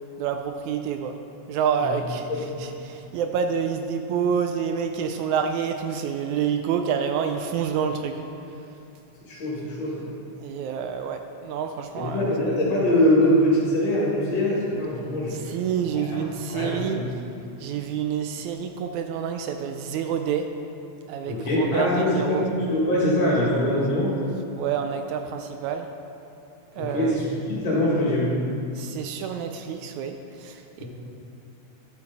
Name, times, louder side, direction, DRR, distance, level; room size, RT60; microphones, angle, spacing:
voice 1, 0.2-1.2 1.5-8.2 10.4-12.2 15.3-17.0 17.6-20.5 21.1-22.5 24.6-25.9 26.8-27.2 28.7-30.8, right 7 dB, 80° right, 6 dB, 1.8 m, -28 dB
voice 2, 2.3-2.7 9.3-10.1 12.0-15.4 15.9-16.2 16.5-17.0 21.3-24.2 26.8-28.4 30.8-30.9, left 1 dB, 55° left, -6 dB, 3.3 m, -23 dB
12.0 x 6.9 x 4.2 m, 2.9 s
omnidirectional pair, 3.5 m